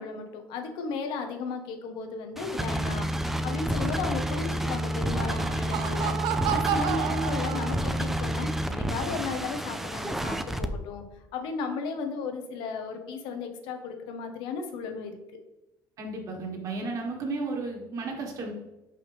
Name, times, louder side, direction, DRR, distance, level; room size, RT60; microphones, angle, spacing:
voice 1, 0.0-3.1 3.4-11.0 11.3-15.1, left 4 dB, 80° left, 6 dB, 1.0 m, -35 dB
sound 1, 2.4-10.7, equal, 5° right, 0.4 m, -29 dB
Laughter, 5.0-8.2, right 11 dB, 70° right, 0.4 m, -31 dB
voice 2, 16.0-18.5, right 3 dB, 45° right, 1 dB, 1.5 m, -33 dB
5.4 x 5.4 x 3.5 m, 1.0 s
cardioid pair, 150°, 8 cm